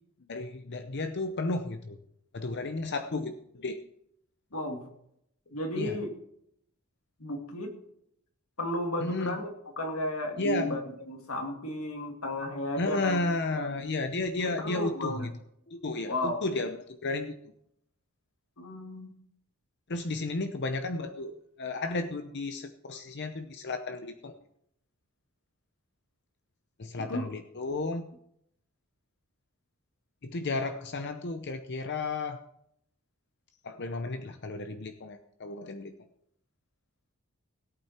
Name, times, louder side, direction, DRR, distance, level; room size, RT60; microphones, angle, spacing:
voice 1, 0.3-2.0 2.3-3.8 5.7-6.0 9.0-9.4 10.4-10.8 12.8-15.3 15.7-17.5 19.9-24.4 26.8-28.1 30.2-32.4 33.6-36.0, left 2 dB, 50° left, 7 dB, 0.7 m, -33 dB
voice 2, 4.5-4.8 5.5-6.1 7.2-7.7 8.6-9.5 9.8-10.8 11.1-13.2 13.6-13.7 14.4-15.3 16.1-16.4 18.6-19.1 27.0-27.3, left 1 dB, 75° left, 3 dB, 2.4 m, -33 dB
17.5 x 8.7 x 4.4 m, 0.73 s
head